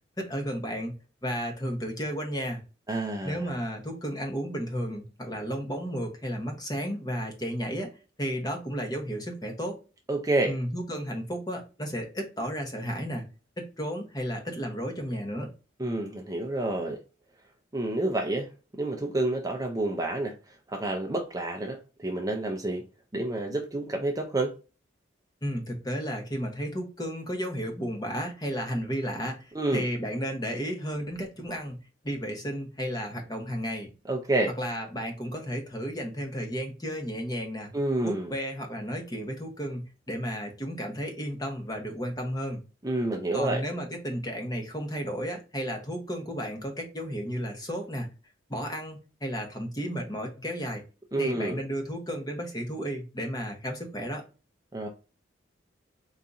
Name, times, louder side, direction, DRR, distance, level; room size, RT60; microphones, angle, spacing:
voice 1, 0.2-0.9 1.2-2.6 3.2-7.9 8.2-9.8 10.4-13.3 13.6-15.5 25.4-31.8 32.0-33.9 34.6-37.7 38.0-42.6 43.3-48.1 48.5-50.8 51.2-54.2, equal, 20° left, 1.0 m, -33 dB
voice 2, 2.9-3.5 10.1-10.6 15.8-17.0 17.7-18.5 18.8-20.3 20.7-22.8 23.1-24.5 29.5-29.8 34.1-34.5 37.7-38.3 42.8-43.6 51.1-51.6 54.7-54.9, right 2 dB, 20° right, 0.5 m, -28 dB
3.9 x 2.7 x 3.5 m
head